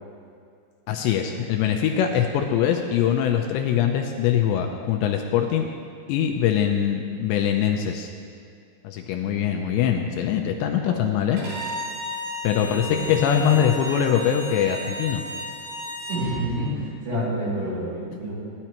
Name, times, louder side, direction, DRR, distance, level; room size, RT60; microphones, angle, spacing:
voice 1, 0.9-5.7 6.1-8.1 8.8-11.4 12.4-15.2, left 9 dB, 85° left, 3 dB, 2.6 m, -23 dB
voice 2, 10.7-11.0 11.3-11.6 12.5-13.1 16.1-18.4, right 1 dB, 70° right, -8 dB, 4.9 m, -29 dB
Bowed string instrument, 11.4-16.2, equal, 55° right, 2.6 m, -34 dB
17.0 x 11.0 x 3.0 m, 2.3 s
omnidirectional pair, 5.5 m